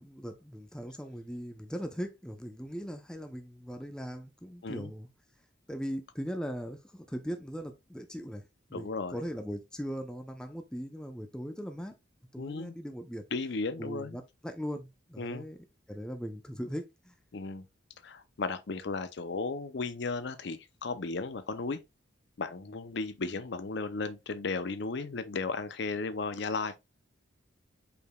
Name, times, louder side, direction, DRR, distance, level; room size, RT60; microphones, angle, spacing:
voice 1, 0.0-5.1 5.7-11.9 12.3-13.3 13.8-15.6 15.9-17.1, equal, 5° left, 0.5 m, -39 dB
voice 2, 8.7-9.2 12.4-12.8 13.3-14.2 15.2-15.5 17.3-17.6 18.0-21.8 22.4-26.8, left 3 dB, 60° left, 0.5 m, -35 dB
5.2 x 4.6 x 2.2 m
head